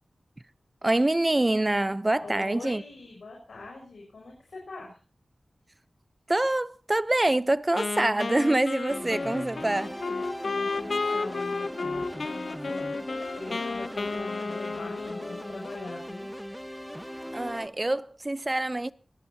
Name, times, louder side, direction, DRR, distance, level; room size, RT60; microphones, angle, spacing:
voice 1, 0.8-2.8 6.3-10.0 17.3-18.9, right 2 dB, 30° right, 0.8 m, -25 dB
voice 2, 2.2-5.0 10.4-16.3, left 3 dB, 85° left, 6.7 m, -43 dB
Wind instrument woodwind instrument, 7.8-15.7, left 4 dB, 70° left, 0.9 m, -32 dB
sound 1, 8.9-17.7, equal, ahead, 1.3 m, -39 dB
23.5 x 17.5 x 2.9 m
cardioid pair, 45°, 0 cm